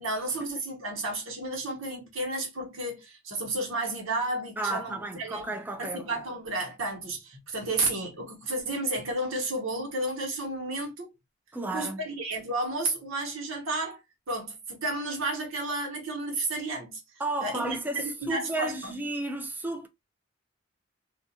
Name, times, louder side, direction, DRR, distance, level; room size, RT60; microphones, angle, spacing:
voice 1, 0.0-5.5 5.8-11.1 11.7-14.0 14.3-17.0 17.4-18.9, right 2 dB, 85° right, 1.1 m, -32 dB
voice 2, 4.6-6.2 11.5-12.0 17.2-19.9, right 2 dB, 10° right, 0.3 m, -33 dB
2.4 x 2.2 x 2.7 m
head